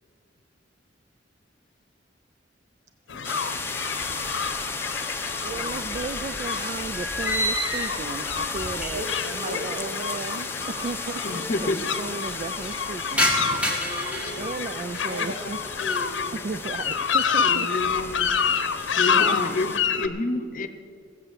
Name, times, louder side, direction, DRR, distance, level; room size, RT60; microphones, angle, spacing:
sound 1, 3.1-20.1, left 6 dB, 85° left, 0.8 m, -29 dB
sound 2, 3.2-19.8, left 3 dB, 15° left, 0.8 m, -35 dB
sound 3, 4.0-4.9 5.2-9.3 9.5-9.6 10.5-10.6 10.8-10.9 11.2-11.6 12.0-15.3 15.7-16.2 16.6-17.0 17.4-18.3, left 1 dB, 5° right, 2.1 m, -31 dB
voice 1, 5.4-11.2 11.6-11.7 12.0-13.8 14.4-15.6 16.3-17.7 19.1-19.4, right 4 dB, 40° right, 13 dB, 0.3 m, -35 dB
voice 2, 9.4-9.8 10.7-11.0 11.3-11.5 13.6-14.6 15.0-15.4 15.8-16.4 17.2-17.5, left 1 dB, 55° right, 1 dB, 2.3 m, -37 dB
voice 3, 11.2-11.8 17.4-18.4 19.0-20.7, left 2 dB, 45° left, 9 dB, 0.8 m, -29 dB
16.0 x 7.7 x 7.4 m, 2.3 s
head